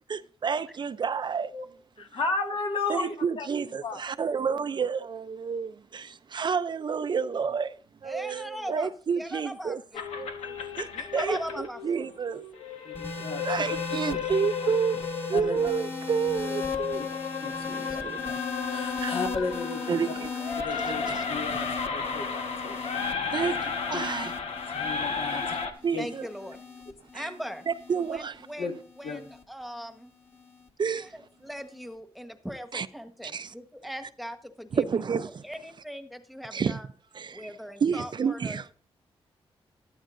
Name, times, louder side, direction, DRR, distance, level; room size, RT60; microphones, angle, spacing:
voice 1, 0.1-1.5 2.9-7.7 8.0-9.8 10.2-12.4 13.4-17.0 18.0-18.4 18.7-19.2 19.9-20.3 20.8-21.2 23.3-24.3 24.6-24.8 25.3-25.4 25.8-26.3 27.1-27.3 27.7-28.4 30.8-31.1 32.7-32.9 33.2-33.5 34.7-35.4 36.5-36.8 37.1-37.5 37.8-38.7, right 6 dB, 50° right, 0.5 m, -30 dB
voice 2, 2.0-3.5 3.8-4.0 12.9-13.4 14.1-14.2 15.3-15.6 17.4-18.0 18.7-20.0 20.6-21.7 21.9-23.0 23.3-23.6 23.9-24.0 24.7-25.6 25.9-26.1 28.6-28.7 29.0-29.2, left 4 dB, 60° left, 2.0 m, -34 dB
voice 3, 8.0-8.9 9.2-10.0 10.9-12.1 20.1-20.2 26.0-26.6 27.1-27.7 28.1-30.1 30.9-34.8 35.4-36.9 37.3-38.6, equal, ahead, 1.5 m, -40 dB
sound 1, 9.9-25.7, left 6 dB, 90° left, 1.3 m, -33 dB
sound 2, 12.9-29.4 30.3-30.7, left 4 dB, 25° left, 1.8 m, -38 dB
13.0 x 12.5 x 2.6 m
cardioid pair, 75°, 10 cm